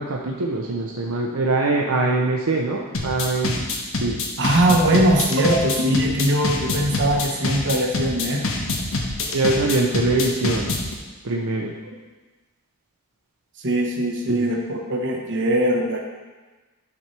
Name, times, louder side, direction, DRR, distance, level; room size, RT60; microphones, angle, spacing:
voice 1, 0.0-3.7 4.0-4.2 9.3-10.7 11.2-11.7 14.3-14.5, right 2 dB, 80° right, 0 dB, 0.7 m, -23 dB
sound 1, 2.9-10.9, left 2 dB, 65° left, 1.2 m, -25 dB
voice 2, 4.4-8.7 13.6-16.0, right 1 dB, 60° right, 1 dB, 1.2 m, -21 dB
11.0 x 6.0 x 3.3 m, 1.2 s
head